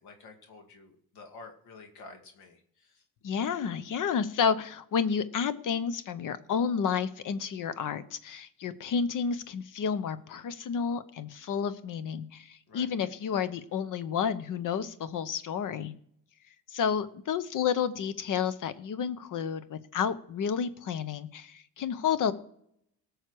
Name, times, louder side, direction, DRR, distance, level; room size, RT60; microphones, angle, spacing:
voice 1, 0.0-3.0 12.7-12.9, left 3 dB, 90° left, 4 dB, 2.2 m, -50 dB
voice 2, 3.2-15.9 16.7-22.3, left 7 dB, 60° left, 14 dB, 1.0 m, -31 dB
18.5 x 6.6 x 4.7 m, 0.70 s
cardioid pair, 105°, 36 cm